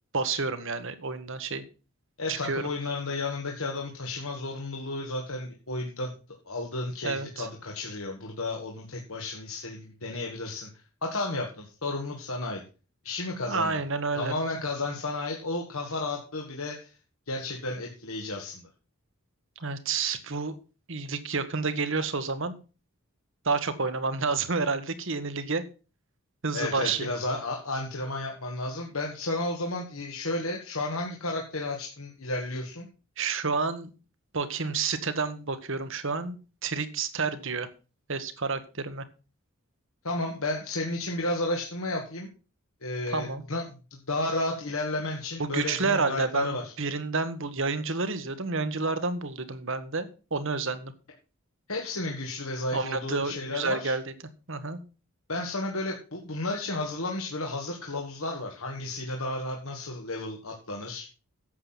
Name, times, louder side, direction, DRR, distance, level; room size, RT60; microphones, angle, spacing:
voice 1, 0.1-1.6 2.3-2.6 7.0-7.5 13.5-14.3 19.6-20.6 20.9-22.6 23.4-25.6 26.4-27.1 33.2-33.9 34.3-36.4 36.6-37.7 38.1-39.0 43.1-43.4 45.4-50.9 52.7-54.1 54.5-54.8, right 4 dB, 60° right, 11 dB, 1.4 m, -29 dB
voice 2, 2.2-6.1 6.5-10.7 11.0-12.6 13.0-13.8 14.2-16.9 17.3-18.6 26.5-32.9 40.0-42.3 42.8-43.6 44.1-46.7 51.7-53.9 55.3-61.1, left 2 dB, 75° left, 0 dB, 2.0 m, -32 dB
11.0 x 7.9 x 5.9 m, 0.34 s
head